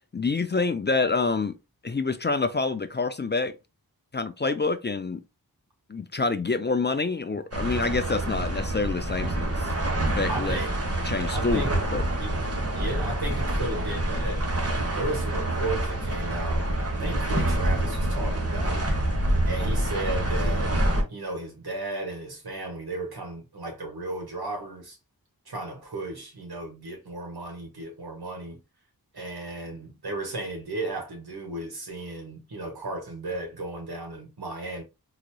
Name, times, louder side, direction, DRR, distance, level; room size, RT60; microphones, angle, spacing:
voice 1, 0.1-1.5 1.8-3.5 4.1-5.2 5.9-9.7 10.1-10.6 11.1-11.6 11.9-12.0, left 3 dB, 30° left, 0.4 m, -27 dB
sound 1, 7.5-21.0, right 1 dB, 40° right, 1.2 m, -27 dB
voice 2, 10.3-10.7 11.3-11.8 12.2-12.5 12.7-18.9 19.4-20.8 21.1-25.0 25.4-28.6 29.1-34.8, right 2 dB, 85° right, 1.5 m, -34 dB
3.8 x 3.0 x 2.2 m
wide cardioid pair, 60°, 37 cm